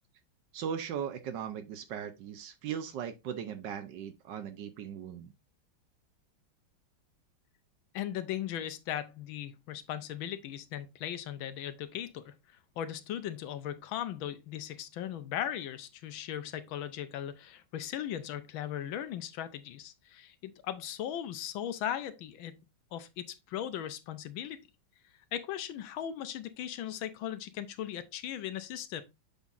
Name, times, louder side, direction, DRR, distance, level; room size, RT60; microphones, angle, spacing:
voice 1, 0.5-5.3, right 8 dB, 70° right, 1.2 m, -38 dB
voice 2, 7.9-12.3 12.8-22.6 22.9-24.6 25.3-29.0, left 10 dB, 75° left, 1.5 m, -38 dB
7.1 x 5.6 x 2.5 m
omnidirectional pair, 2.3 m